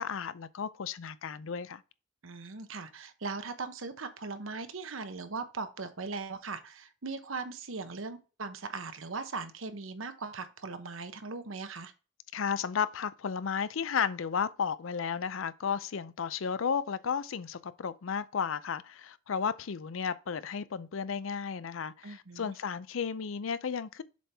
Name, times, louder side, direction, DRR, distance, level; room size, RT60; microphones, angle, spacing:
voice 1, 0.0-1.8 12.3-24.0, left 6 dB, 85° left, 0.5 m, -33 dB
voice 2, 2.2-11.9 22.0-22.5, right 4 dB, 90° right, 1.0 m, -39 dB
7.2 x 4.4 x 3.4 m
head